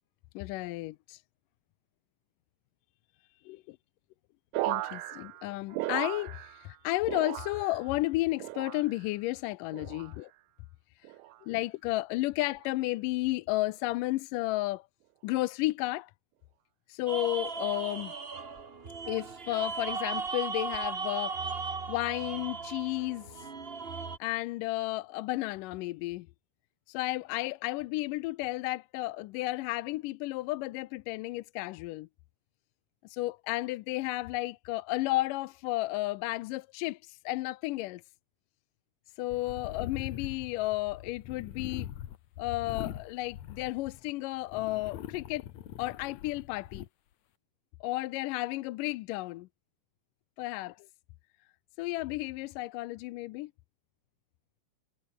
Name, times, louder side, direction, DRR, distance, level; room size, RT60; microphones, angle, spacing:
voice 1, 0.4-1.2 3.5-3.8 4.6-10.3 11.4-14.9 15.2-16.1 16.9-18.1 19.1-21.4 21.9-23.5 24.2-26.3 26.9-32.1 33.0-38.0 39.2-41.9 42.4-45.4 45.8-46.9 47.8-49.5 50.4-50.9 51.8-53.5, left 19 dB, 85° left, 2.3 m, -33 dB
sound 1, 4.5-6.8 7.0-7.9 8.4-9.1 9.7-10.2 11.0-11.4 12.4-12.7, right 18 dB, 75° right, 2.1 m, -37 dB
sound 2, 17.1-24.2, right 5 dB, 55° right, 0.6 m, -37 dB
sound 3, 39.3-44.1 44.5-46.9, left 11 dB, 65° left, 2.5 m, -42 dB
omnidirectional pair, 3.8 m